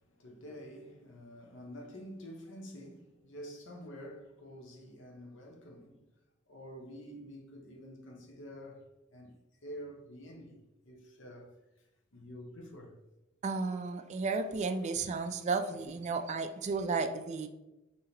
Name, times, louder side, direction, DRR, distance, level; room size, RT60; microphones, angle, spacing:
voice 1, 0.0-6.0 6.5-10.6 10.8-13.0, equal, 65° left, 0.8 m, -48 dB
voice 2, 13.4-17.5, right 4 dB, 35° right, 0.3 m, -33 dB
5.1 x 2.7 x 2.8 m
head